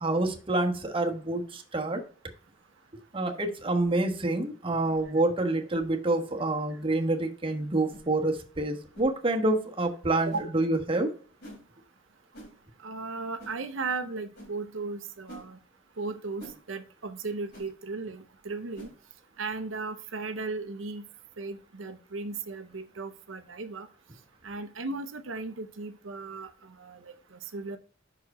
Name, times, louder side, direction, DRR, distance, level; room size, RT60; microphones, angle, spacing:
voice 1, 0.0-2.0 3.1-11.1, right 2 dB, 25° right, 3 dB, 1.2 m, -27 dB
sound 1, 3.7-3.9 4.8-5.0 5.7-5.9 6.8-6.9 7.9-8.1 8.9-9.1 10.3-10.5 11.4-11.6 12.3-12.5 13.4-13.6 14.3-14.5 15.3-15.5 16.4-16.6 17.5-17.7 18.7-18.9, equal, 60° left, 3.0 m, -47 dB
voice 2, 12.8-15.6 16.0-18.9 19.4-21.1 21.4-23.9 24.4-27.8, right 3 dB, 75° right, 9 dB, 0.7 m, -36 dB
5.9 x 4.7 x 5.4 m, 0.41 s
head